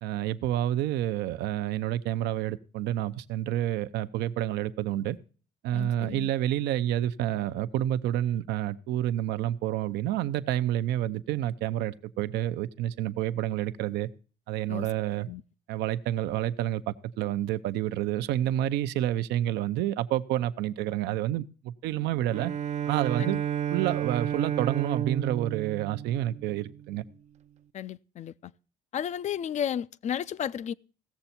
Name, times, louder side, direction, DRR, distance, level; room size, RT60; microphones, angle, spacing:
voice 1, 0.0-5.2 5.6-14.1 14.5-15.3 15.7-22.5 22.9-23.4 23.7-27.0, right 12 dB, 85° right, 0.7 m, -29 dB
voice 2, 5.7-6.3 14.7-14.9 15.3-15.4 23.2-23.4 27.7-28.5 28.9-30.7, left 9 dB, 45° left, 0.4 m, -33 dB
Bowed string instrument, 22.3-26.9, right 10 dB, 45° right, 0.4 m, -31 dB
16.5 x 7.0 x 4.3 m
cardioid pair, 110°, 17 cm